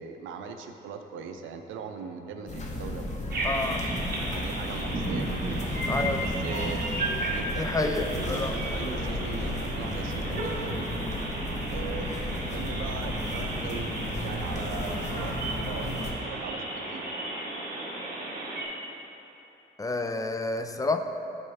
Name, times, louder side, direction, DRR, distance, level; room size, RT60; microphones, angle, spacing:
voice 1, 0.0-3.7 4.4-5.7 6.2-6.8 7.3-11.2 11.7-17.0, right 5 dB, 80° right, 6 dB, 0.5 m, -40 dB
sound 1, 2.5-16.1, left 1 dB, 35° left, 0.9 m, -34 dB
sound 2, 3.3-18.6, right 1 dB, 50° right, 1.4 m, -34 dB
voice 2, 3.4-3.8 5.9-6.2 7.6-8.6 19.8-21.0, left 2 dB, 15° left, 6 dB, 0.4 m, -29 dB
9.9 x 4.3 x 3.4 m, 2.9 s
cardioid pair, 90°, 20 cm